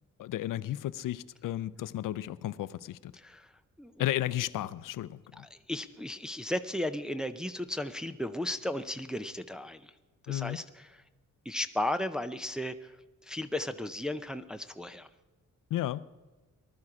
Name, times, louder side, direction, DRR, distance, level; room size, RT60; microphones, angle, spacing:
voice 1, 0.2-3.1 4.0-5.5 10.3-10.6 15.7-16.0, left 13 dB, 85° left, 0.6 m, -33 dB
voice 2, 3.1-3.5 3.8-3.9 5.3-9.9 10.3-11.0 11.5-13.0 13.2-15.1, left 1 dB, ahead, 0.4 m, -35 dB
19.5 x 12.0 x 4.9 m
wide cardioid pair, 170°, 32 cm